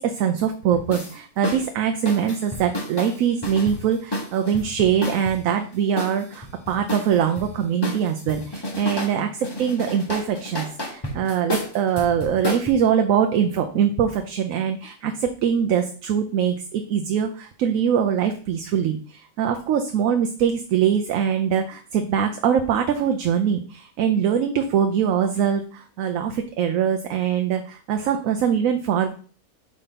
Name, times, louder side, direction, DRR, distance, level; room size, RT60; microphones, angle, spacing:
voice 1, 0.0-29.1, right 8 dB, 70° right, 5 dB, 0.9 m, -23 dB
sound 1, 0.7-1.1 1.4-1.6 2.1-5.5 6.0-7.5 7.8-9.2 9.4-12.7, left 1 dB, 20° left, 0.8 m, -30 dB
5.1 x 3.3 x 5.6 m, 0.42 s
omnidirectional pair, 1.6 m